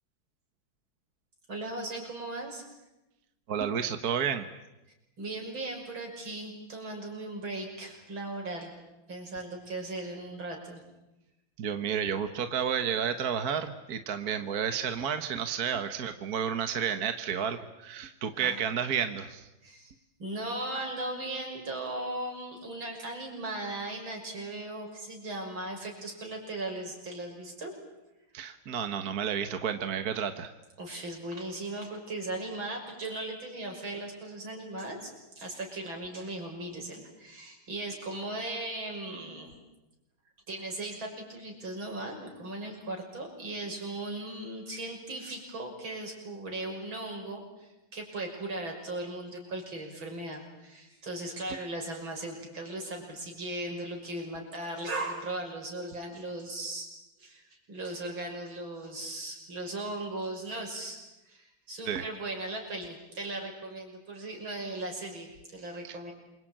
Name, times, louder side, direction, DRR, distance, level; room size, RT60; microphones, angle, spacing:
voice 1, 1.5-2.6 5.2-8.7 9.1-10.8 18.3-18.6 19.6-19.9 20.2-27.7 30.8-39.5 40.5-56.9 57.2-61.0 61.2-66.1, right 2 dB, 75° right, 2 dB, 6.9 m, -38 dB
voice 2, 3.5-4.5 11.6-19.5 28.3-30.5 61.8-62.0 65.8-66.0, right 8 dB, 50° right, 8 dB, 1.6 m, -31 dB
28.0 x 24.0 x 8.9 m, 0.99 s
omnidirectional pair, 2.2 m